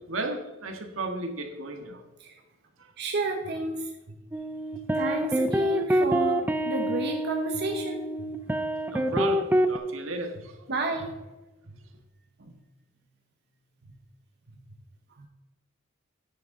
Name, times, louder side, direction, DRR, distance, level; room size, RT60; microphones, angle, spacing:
voice 1, 0.0-2.0 2.8-2.9 5.1-5.2 8.7-10.6, right 2 dB, 80° right, 1.5 m, -34 dB
voice 2, 3.0-3.8 4.9-8.0 10.7-11.1 12.4-12.5 15.2-15.3, right 2 dB, 55° right, 1.1 m, -31 dB
sound 1, 4.3-9.8, equal, 10° right, 0.5 m, -26 dB
10.5 x 9.6 x 3.8 m
head